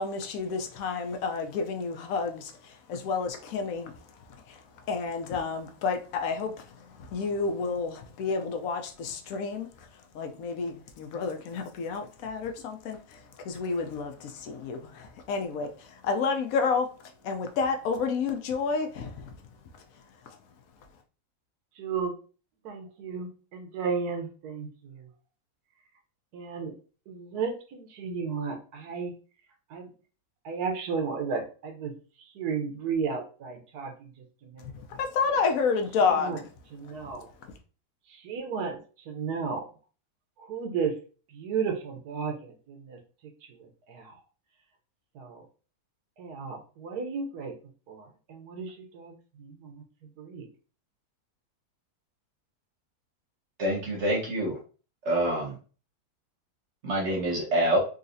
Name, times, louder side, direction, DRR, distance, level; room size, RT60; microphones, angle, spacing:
voice 1, 0.0-19.4 20.2-20.4 34.6-36.4 37.4-37.5, left 5 dB, 70° left, 1.0 m, -30 dB
voice 2, 21.7-22.1 22.6-25.1 26.3-26.7 27.1-29.1 29.7-29.9 30.4-34.1 34.4-35.0 35.3-35.4 36.0-36.4 36.7-37.3 38.1-39.7 40.4-41.0 41.3-43.0 43.5-44.2 45.1-45.5 46.2-47.5 47.9-50.5, right 5 dB, 85° right, 1.3 m, -34 dB
voice 3, 53.6-54.6 55.0-55.6 56.8-57.8, right 1 dB, 50° right, 1.3 m, -26 dB
3.9 x 2.4 x 2.6 m
omnidirectional pair, 1.6 m